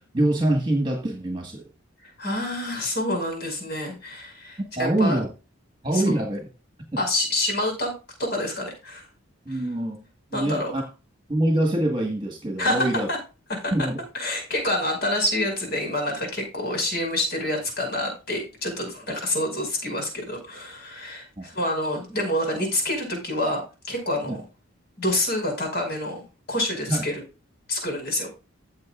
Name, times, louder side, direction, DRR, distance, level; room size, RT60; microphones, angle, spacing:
voice 1, 0.1-1.7 4.8-5.3 5.8-6.5 9.5-10.0 10.3-10.8 11.3-13.1 13.7-14.0 21.4-21.5 24.2-24.4 26.9-27.0, right 1 dB, 20° right, 2 dB, 1.6 m, -24 dB
voice 2, 2.0-5.2 5.9-6.1 7.0-7.9 8.2-9.0 9.5-9.6 10.3-10.7 12.6-13.2 13.5-13.7 14.1-23.6 23.9-24.4 25.0-26.2 26.5-27.2 27.7-28.3, left 1 dB, 50° left, 2 dB, 5.3 m, -27 dB
15.0 x 7.5 x 2.5 m, 0.31 s
head